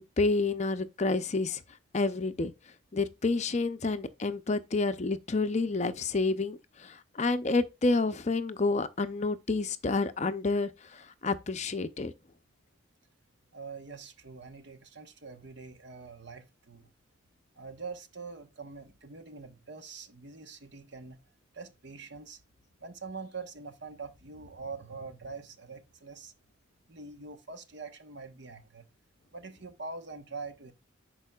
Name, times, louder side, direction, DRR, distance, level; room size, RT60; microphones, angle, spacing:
voice 1, 0.0-1.6 1.9-2.5 2.9-12.1, left 3 dB, 35° left, 0.5 m, -29 dB
voice 2, 13.5-16.9 17.6-21.2 21.5-22.4 22.8-26.3 26.9-28.9 29.3-30.7, right 4 dB, 55° right, 1.1 m, -44 dB
11.0 x 4.6 x 2.3 m
head